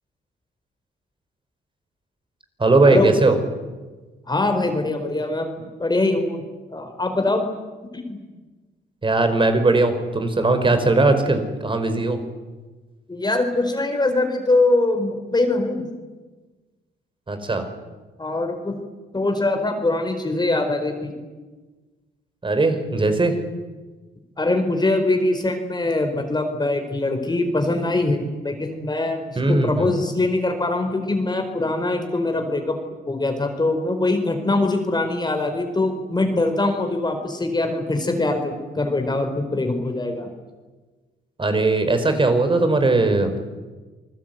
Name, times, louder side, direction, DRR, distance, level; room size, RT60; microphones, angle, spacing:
voice 1, 2.6-3.4 9.0-12.2 17.3-17.7 22.4-23.4 29.3-29.9 41.4-43.4, right 2 dB, 25° right, 8 dB, 4.9 m, -19 dB
voice 2, 4.3-6.4 6.7-7.4 7.9-8.2 13.1-15.8 18.2-18.8 19.1-21.1 24.4-32.8 33.1-40.3, left 2 dB, 20° left, 5 dB, 4.4 m, -23 dB
28.5 x 20.0 x 9.3 m, 1.3 s
cardioid pair, 90°, 20 cm